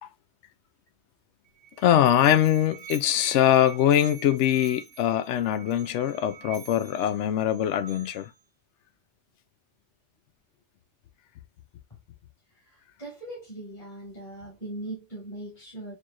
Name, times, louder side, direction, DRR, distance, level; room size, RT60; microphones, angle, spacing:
Musical instrument, 1.5-8.4, right 8 dB, 85° right, 1.1 m, -46 dB
voice 1, 1.8-8.3, left 11 dB, 75° left, 0.9 m, -22 dB
voice 2, 12.7-15.9, right 1 dB, 25° left, 1.9 m, -40 dB
4.6 x 3.0 x 2.3 m
omnidirectional pair, 1.2 m